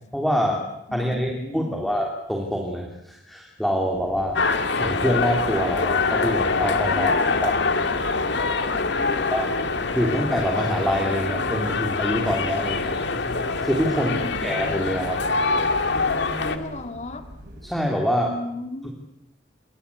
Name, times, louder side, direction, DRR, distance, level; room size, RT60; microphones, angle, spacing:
voice 1, 0.1-4.4 4.7-7.7 9.3-9.5 9.9-12.9 13.6-15.2 17.6-18.3, equal, ahead, 0 dB, 3.1 m, -25 dB
voice 2, 0.9-1.8 6.9-7.2 9.0-9.3 14.0-14.6 16.4-17.3 18.2-18.9, left 1 dB, 40° left, 7 dB, 2.3 m, -35 dB
sound 1, 3.9-17.7, equal, 60° right, 7.1 m, -42 dB
sound 2, 4.3-16.6, left 4 dB, 65° left, 2.0 m, -24 dB
27.0 x 22.5 x 8.5 m, 0.85 s
head